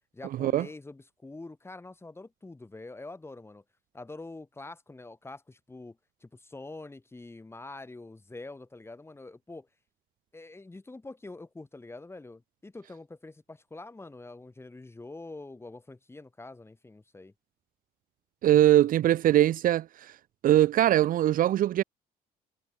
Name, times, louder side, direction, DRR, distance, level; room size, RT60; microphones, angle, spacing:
voice 1, 0.1-3.6 3.9-9.7 10.3-17.3, left 2 dB, 15° left, 7.8 m, -45 dB
voice 2, 18.4-20.1 20.4-21.8, right 12 dB, 55° right, 0.6 m, -22 dB
cardioid pair, 110°, 17 cm